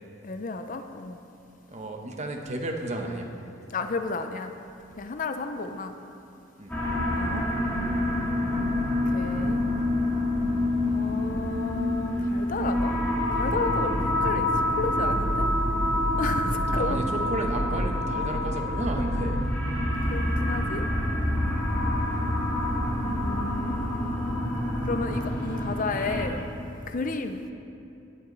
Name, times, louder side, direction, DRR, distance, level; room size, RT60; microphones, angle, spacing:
voice 1, 0.2-1.2 3.7-4.5 5.0-5.9 7.1-7.5 9.1-9.6 10.8-12.9 13.3-15.5 16.2-17.0 20.1-20.9 23.0-24.4 24.8-26.4 26.9-27.4, left 3 dB, 40° left, 8 dB, 0.5 m, -32 dB
voice 2, 1.7-3.3 6.6-6.7 16.5-19.4, right 1 dB, 35° right, 2 dB, 1.1 m, -32 dB
sound 1, 6.7-26.2, left 1 dB, 10° left, 2.1 m, -27 dB
18.5 x 8.5 x 4.0 m, 2.7 s
head